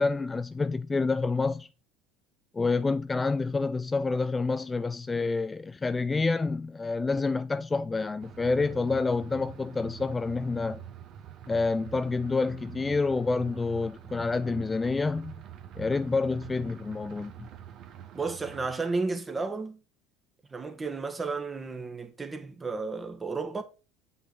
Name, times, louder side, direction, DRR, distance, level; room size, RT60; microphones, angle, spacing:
voice 1, 0.0-1.7 2.5-10.8 11.5-15.3 15.8-17.5, left 3 dB, 20° left, 0.4 m, -28 dB
sound 1, 8.2-18.7, right 10 dB, 50° right, 1.2 m, -45 dB
voice 2, 18.1-19.8 20.5-23.6, right 4 dB, 20° right, 1.4 m, -33 dB
7.9 x 5.9 x 3.8 m
hypercardioid pair, 70°, 0 cm